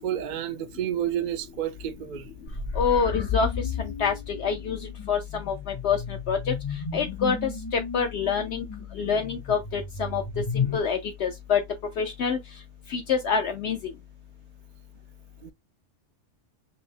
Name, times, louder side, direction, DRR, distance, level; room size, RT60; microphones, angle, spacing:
voice 1, 0.0-2.3 15.4-15.5, right 11 dB, 60° right, 0.5 m, -30 dB
sound 1, 2.5-10.8, left 6 dB, 30° left, 0.5 m, -33 dB
voice 2, 2.8-3.5 3.8-4.8 5.1-6.5 6.9-8.6 9.0-10.2 10.5-11.6 12.0-12.4 12.9-13.8, left 6 dB, 65° left, 0.8 m, -26 dB
5.4 x 2.0 x 2.6 m
omnidirectional pair, 1.3 m